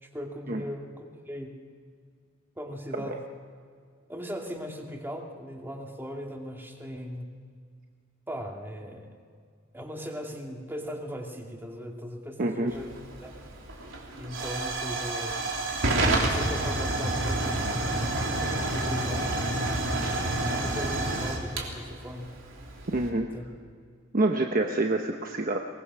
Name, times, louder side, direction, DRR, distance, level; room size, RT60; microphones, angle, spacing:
voice 1, 0.0-1.5 2.6-3.2 4.1-7.3 8.3-9.1 9.7-12.9 13.2-13.4 14.2-15.5 16.3-17.7 18.6-19.3 20.5-22.3 23.3-23.4, equal, 10° right, 1 dB, 2.3 m, -38 dB
voice 2, 12.4-12.7 22.9-23.3 24.1-25.6, right 2 dB, 45° right, 3 dB, 1.0 m, -27 dB
Hiss / Fire / Tick, 12.7-23.1, right 2 dB, 75° right, 3.4 m, -29 dB
23.0 x 19.5 x 6.1 m, 2.1 s
head